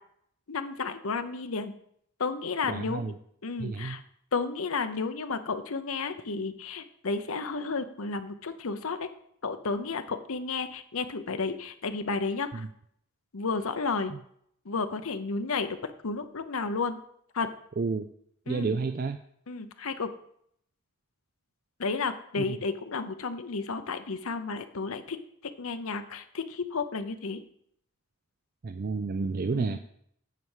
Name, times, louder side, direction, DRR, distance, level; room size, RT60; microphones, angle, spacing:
voice 1, 0.5-1.7 2.2-3.1 3.4-4.0 4.3-9.1 9.4-12.6 13.3-14.1 14.7-15.8 16.0-17.0 17.3-17.5 18.5-18.7 19.5-20.1 21.8-25.2 25.6-27.4 29.5-29.8, left 4 dB, 75° left, 9 dB, 0.8 m, -32 dB
voice 2, 2.7-3.1 3.6-4.0 12.5-12.7 17.8-18.1 18.5-19.2 22.4-22.6 28.6-29.8, right 4 dB, 40° right, 8 dB, 0.4 m, -30 dB
9.3 x 4.7 x 7.3 m, 0.69 s
head